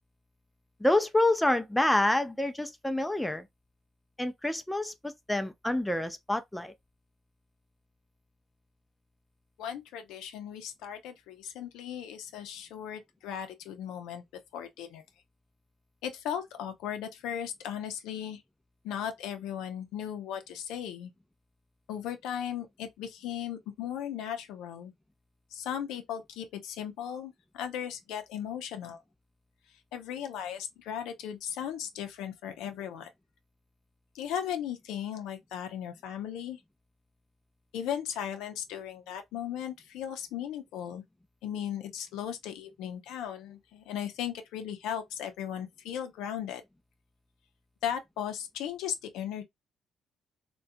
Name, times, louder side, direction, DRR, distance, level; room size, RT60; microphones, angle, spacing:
voice 1, 0.8-3.5 4.2-6.7, left 1 dB, 5° left, 0.4 m, -27 dB
voice 2, 9.6-14.2 14.5-15.0 16.0-18.4 18.8-21.1 21.9-24.9 25.5-29.0 29.9-33.1 34.1-36.6 37.7-41.0 41.4-46.6 47.8-49.4, left 9 dB, 90° left, 0.5 m, -37 dB
2.4 x 2.2 x 2.5 m
cardioid pair, 85°, 0 cm